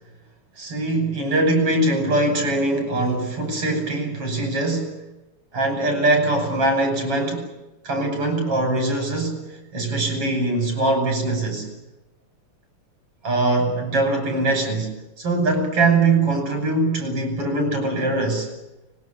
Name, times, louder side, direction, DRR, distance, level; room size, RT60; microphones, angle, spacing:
voice 1, 0.6-5.0 5.5-7.5 7.8-11.7 13.2-18.5, right 2 dB, 50° right, 5 dB, 7.0 m, -22 dB
24.5 x 21.5 x 9.7 m, 1.0 s
omnidirectional pair, 3.4 m